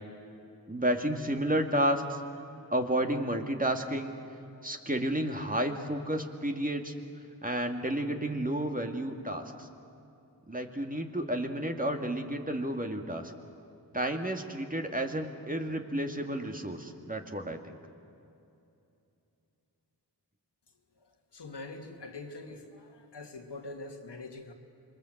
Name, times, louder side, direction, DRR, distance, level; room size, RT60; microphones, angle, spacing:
voice 1, 0.7-2.2 2.7-4.1 4.6-6.9 7.4-9.7 10.5-13.3 13.9-17.7, right 1 dB, 20° right, 4 dB, 2.1 m, -31 dB
voice 2, 21.0-24.5, left 2 dB, 85° left, 3 dB, 2.3 m, -44 dB
27.5 x 23.0 x 8.0 m, 2.7 s
wide cardioid pair, 65°, 40 cm